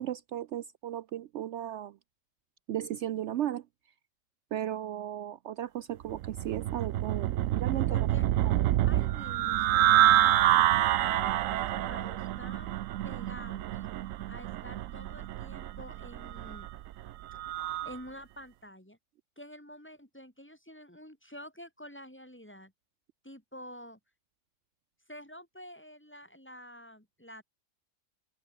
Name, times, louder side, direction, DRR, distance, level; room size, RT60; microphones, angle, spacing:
voice 1, 0.0-2.0 2.7-3.6 4.5-8.1 8.5-8.6, right 11 dB, 70° right, 0.8 m, -35 dB
sound 1, 6.1-18.0, right 13 dB, 90° right, 1.0 m, -27 dB
voice 2, 7.9-8.3 8.9-12.8 13.0-13.7 14.3-16.7 17.3-17.4 17.8-19.0 19.4-22.7 23.2-24.0 25.1-27.4, equal, 10° left, 2.6 m, -48 dB
open air
omnidirectional pair, 1.4 m